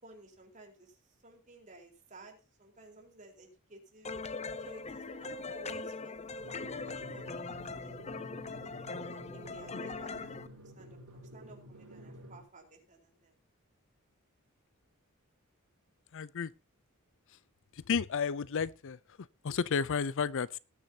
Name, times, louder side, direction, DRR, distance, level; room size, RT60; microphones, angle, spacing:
voice 1, 0.0-1.0 1.2-4.1 4.6-6.3 6.8-7.9 9.0-10.5 10.8-13.3, right 2 dB, 35° right, 4.2 m, -55 dB
sound 1, 4.0-10.5, left 3 dB, 30° left, 0.9 m, -41 dB
Drum, 6.4-12.4, equal, 75° right, 5.7 m, -50 dB
voice 2, 16.1-16.5 17.9-19.0 19.4-20.6, left 6 dB, 60° left, 0.5 m, -32 dB
19.0 x 9.7 x 2.8 m
head